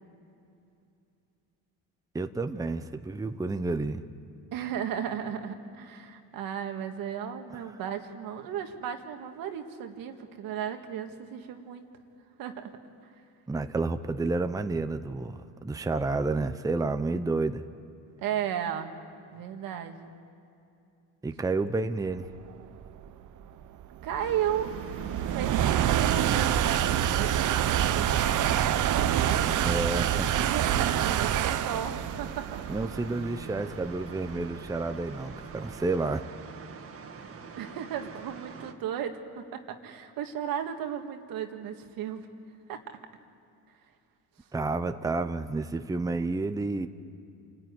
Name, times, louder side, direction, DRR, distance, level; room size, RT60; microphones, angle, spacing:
voice 1, 2.1-4.0 7.5-7.6 13.5-17.6 21.2-22.3 29.6-30.3 32.7-36.3 44.5-46.9, right 3 dB, 10° right, 9 dB, 0.8 m, -30 dB
voice 2, 4.5-11.9 12.4-12.8 18.2-19.0 19.3-20.1 24.0-24.7 25.3-29.6 30.4-32.8 37.6-42.3 42.7-42.8, right 9 dB, 75° right, 5 dB, 1.8 m, -35 dB
sound 1, 22.4-35.7, right 10 dB, 60° right, 0.9 m, -27 dB
sound 2, 24.2-38.7, right 5 dB, 40° right, 1.8 m, -44 dB
28.0 x 14.5 x 9.6 m, 2.6 s
cardioid pair, 105°, 35 cm